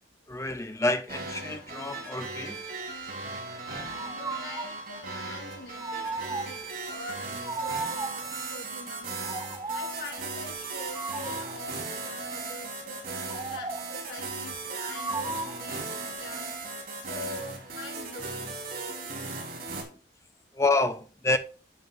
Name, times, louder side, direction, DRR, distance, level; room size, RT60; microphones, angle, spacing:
voice 1, 0.3-2.6 20.5-21.4, left 2 dB, 15° left, 0.7 m, -28 dB
sound 1, 1.1-19.8, right 3 dB, 50° right, 4.0 m, -37 dB
voice 2, 3.9-9.2 9.7-13.0 13.5-16.5 16.9-18.7, left 2 dB, 85° left, 3.7 m, -44 dB
sound 2, 4.0-4.8 5.8-6.7 7.4-8.3 9.2-10.1 10.9-11.7 13.3-14.0 14.9-15.7, right 3 dB, 20° right, 0.6 m, -35 dB
11.0 x 8.9 x 2.6 m
head